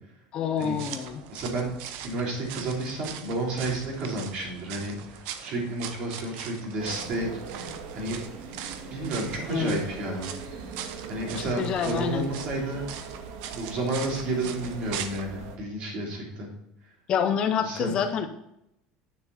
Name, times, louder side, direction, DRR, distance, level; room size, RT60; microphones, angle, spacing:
voice 1, 0.3-1.2 9.5-9.8 11.4-12.3 17.1-18.3, left 7 dB, 35° left, 7 dB, 0.7 m, -27 dB
sound 1, 0.6-15.2, right 9 dB, 65° right, 0.9 m, -41 dB
voice 2, 1.3-1.7 2.0-8.3 8.9-10.3 11.1-12.9 13.5-16.5 17.6-18.0, right 2 dB, 40° right, -1 dB, 3.3 m, -31 dB
sound 2, 6.8-15.6, right 4 dB, 80° right, 1.8 m, -41 dB
9.5 x 6.9 x 4.1 m, 0.83 s
cardioid pair, 170°, 3 cm